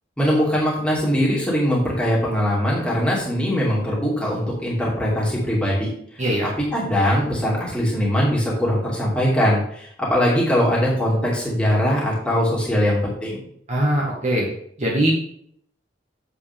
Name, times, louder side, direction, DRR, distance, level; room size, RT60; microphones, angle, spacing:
voice 1, 0.2-5.9 6.4-13.4, equal, 5° left, -6 dB, 2.5 m, -21 dB
voice 2, 13.7-14.5 14.8-15.1, right 1 dB, 35° right, -3 dB, 1.7 m, -21 dB
8.4 x 7.6 x 3.6 m, 0.67 s
head